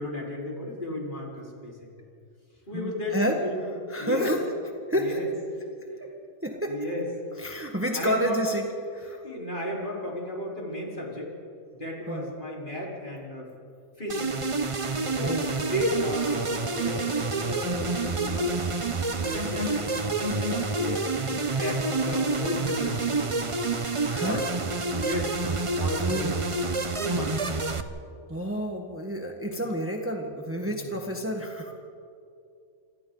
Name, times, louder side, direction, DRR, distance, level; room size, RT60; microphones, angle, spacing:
voice 1, 0.0-1.9 2.7-3.7 4.0-4.3 5.0-5.3 6.5-7.1 7.9-8.4 8.7-8.8 9.1-11.3 11.8-13.5 14.0-14.4 15.0-18.6 19.2-21.1 21.6-23.5 24.2-24.5 24.9-26.5 27.0-27.4 29.4-29.6 30.6-30.9, left 1 dB, 45° left, -3 dB, 4.4 m, -34 dB
voice 2, 2.7-3.3 3.9-4.4 4.9-5.2 6.4-6.7 7.4-8.7 8.9-9.2 12.1-12.3 15.2-15.7 24.1-24.4 26.0-26.3 28.3-31.7, equal, 10° right, 1 dB, 1.6 m, -29 dB
sound 1, 14.1-27.8, right 3 dB, 30° right, 0.9 m, -28 dB
28.0 x 25.0 x 4.0 m, 2.5 s
omnidirectional pair, 1.2 m